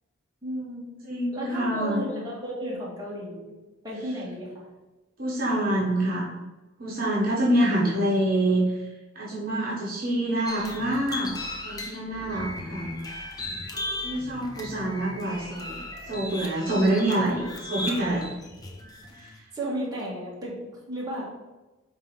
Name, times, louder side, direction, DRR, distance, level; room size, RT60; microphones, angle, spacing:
voice 1, 0.4-0.9 1.3-3.6 3.8-4.7 19.5-20.6 20.9-21.2, right 1 dB, 20° right, -6 dB, 1.8 m, -33 dB
voice 2, 1.0-2.0 5.2-6.3 6.8-8.6 9.1-11.3 11.6-12.9 14.0-15.8 16.1-18.2 19.1-19.3, right 1 dB, 45° right, -6 dB, 1.4 m, -26 dB
sound 1, 10.5-19.4, left 2 dB, 20° left, 0.8 m, -37 dB
5.4 x 3.8 x 5.4 m, 1.1 s
head